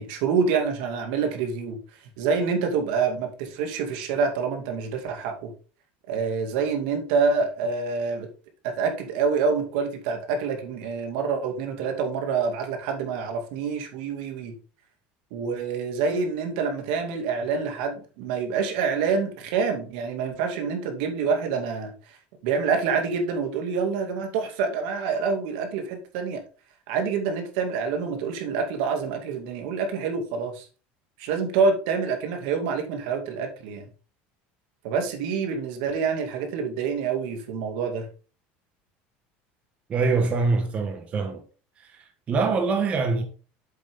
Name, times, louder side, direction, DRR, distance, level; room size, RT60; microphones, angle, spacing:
voice 1, 0.0-1.8 2.2-5.5 6.1-8.3 8.6-14.5 15.3-22.2 22.4-26.4 26.9-30.7 31.2-33.8 34.8-38.1, right 5 dB, 70° right, 2.4 m, -27 dB
voice 2, 39.9-41.4 41.8-43.2, right 4 dB, 25° right, 1.4 m, -24 dB
7.9 x 7.6 x 3.7 m
cardioid pair, 165°, 5 cm